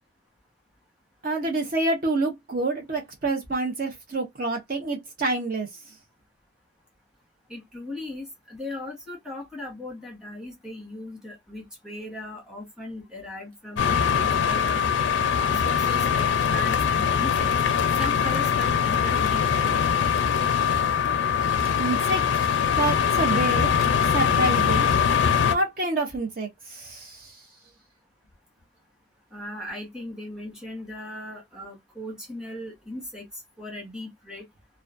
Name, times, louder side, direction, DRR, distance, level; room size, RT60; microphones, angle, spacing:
voice 1, 1.2-5.7 21.8-22.2 22.8-23.7 24.1-24.9 25.5-27.3, right 2 dB, 45° right, 0.6 m, -27 dB
voice 2, 7.5-14.8 15.3-17.5 18.0-20.0 29.3-34.4, left 1 dB, 5° right, 1.0 m, -38 dB
space heater run hum electric, 13.8-25.6, left 7 dB, 70° left, 0.4 m, -22 dB
2.3 x 2.2 x 2.4 m
head